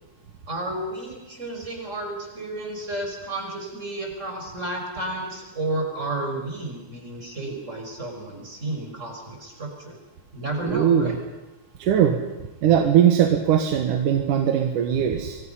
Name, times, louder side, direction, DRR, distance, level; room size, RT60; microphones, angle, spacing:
voice 1, 0.5-10.0 10.3-11.2, right 2 dB, 20° right, 1 dB, 5.6 m, -32 dB
voice 2, 10.6-11.2 11.8-12.2 12.6-15.4, right 9 dB, 90° right, 4 dB, 3.0 m, -20 dB
29.0 x 23.0 x 5.7 m, 1.1 s
omnidirectional pair, 3.5 m